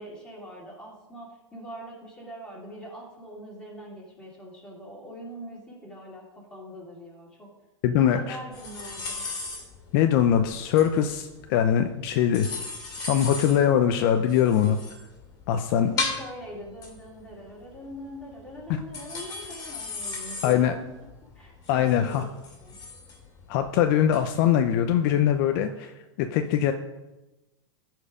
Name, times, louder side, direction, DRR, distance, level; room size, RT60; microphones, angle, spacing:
voice 1, 0.0-7.5 8.1-9.2 15.8-20.8 21.2-22.3 22.6-22.8, equal, 5° left, -4 dB, 2.9 m, -42 dB
voice 2, 7.8-8.4 9.9-12.5 13.1-14.8 15.5-15.9 20.4-20.7 21.7-22.2 23.5-26.7, left 9 dB, 50° left, 6 dB, 0.6 m, -22 dB
sound 1, 8.5-25.6, left 3 dB, 25° left, 2.5 m, -37 dB
13.5 x 4.6 x 5.0 m, 1.0 s
supercardioid pair, 140°, 15 cm